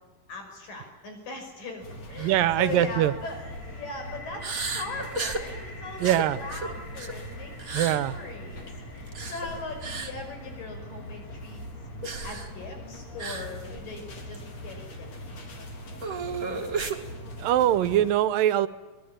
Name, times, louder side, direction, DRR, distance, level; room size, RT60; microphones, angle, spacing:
voice 1, 0.3-11.6 12.2-15.5, left 3 dB, 70° left, 4 dB, 7.2 m, -40 dB
sound 1, 1.8-18.1, equal, 50° left, 4.4 m, -42 dB
voice 2, 2.1-3.1 6.0-6.4 7.7-8.2 17.4-18.7, right 12 dB, 80° right, 14 dB, 2.6 m, -23 dB
sound 2, 2.2-2.4 2.8-2.9 4.4-5.5 6.0-7.2 7.6-8.0 9.1-9.4 9.8-10.1 12.0-12.5 13.2-13.5 13.8-13.9 14.3-14.4 16.0-17.0, right 4 dB, 30° right, 2.0 m, -33 dB
sound 3, 2.5-14.3, equal, 20° left, 2.7 m, -49 dB
25.0 x 21.0 x 8.9 m, 1.3 s
omnidirectional pair, 4.0 m